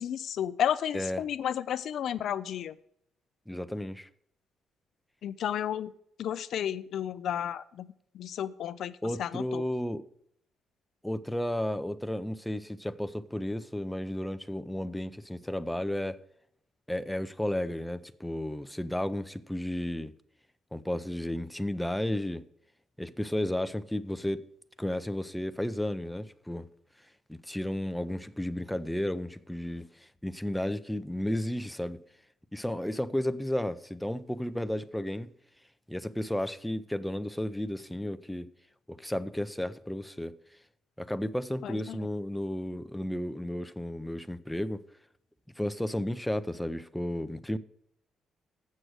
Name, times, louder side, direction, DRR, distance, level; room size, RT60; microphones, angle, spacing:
voice 1, 0.0-2.8 5.2-5.9 6.2-9.6 41.6-42.1, left 9 dB, 70° left, 0.4 m, -32 dB
voice 2, 0.9-1.3 3.5-4.1 9.0-10.0 11.0-16.2 16.9-20.1 20.7-22.4 23.0-24.4 24.8-26.7 27.3-32.0 32.5-35.3 35.9-38.5 38.9-40.4 41.0-44.8 45.6-47.6, left 1 dB, 5° left, 0.5 m, -33 dB
7.6 x 6.3 x 7.9 m
cardioid pair, 90°, 0 cm